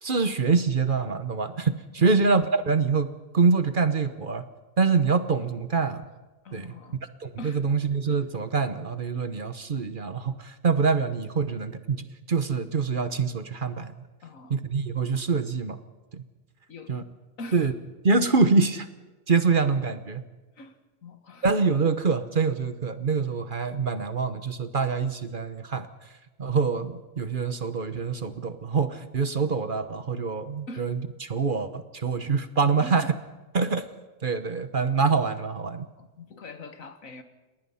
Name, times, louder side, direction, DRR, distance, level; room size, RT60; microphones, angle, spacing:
voice 1, 0.0-4.4 4.8-6.0 6.5-6.7 7.2-13.9 14.5-15.8 16.1-16.2 16.9-17.0 17.5-17.7 18.0-18.9 19.3-20.2 21.4-25.9 26.4-33.0 33.5-33.8 34.2-35.9, right 4 dB, 40° right, 11 dB, 1.1 m, -25 dB
voice 2, 6.4-7.0 7.4-7.8 8.1-8.2 14.2-14.6 16.7-17.0 17.4-17.7 20.6-21.5 30.7-30.9 32.8-33.1 36.0-37.2, left 2 dB, 85° left, 8 dB, 1.9 m, -43 dB
29.5 x 19.0 x 5.7 m, 1.2 s
omnidirectional pair, 1.4 m